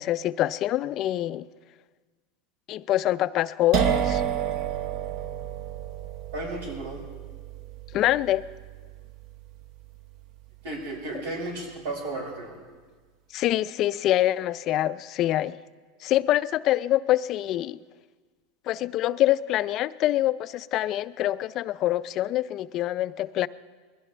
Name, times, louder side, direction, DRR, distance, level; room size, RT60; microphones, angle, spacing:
voice 1, 0.0-1.5 2.7-4.2 7.9-8.4 13.3-15.6 16.0-17.8 18.7-23.5, left 14 dB, 45° left, 0.4 m, -25 dB
sound 1, 3.7-11.3, right 8 dB, 55° right, 1.0 m, -31 dB
voice 2, 6.3-7.0 10.6-12.6, right 2 dB, 85° right, 5.2 m, -34 dB
21.5 x 16.5 x 3.3 m
supercardioid pair, 135°, 0 cm